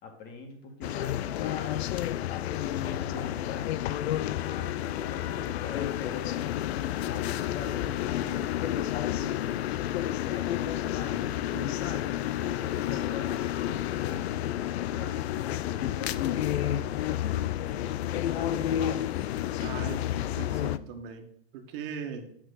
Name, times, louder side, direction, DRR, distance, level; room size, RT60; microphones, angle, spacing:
voice 1, 0.0-3.7 4.3-6.4 6.7-9.8 10.2-14.6 14.9-19.0, left 4 dB, 30° left, 3 dB, 2.1 m, -43 dB
sound 1, 0.8-20.8, left 12 dB, 85° left, 0.5 m, -30 dB
voice 2, 19.6-21.3 21.5-22.3, right 6 dB, 60° right, 5 dB, 1.6 m, -39 dB
7.8 x 6.2 x 4.0 m, 0.71 s
supercardioid pair, 135°, 31 cm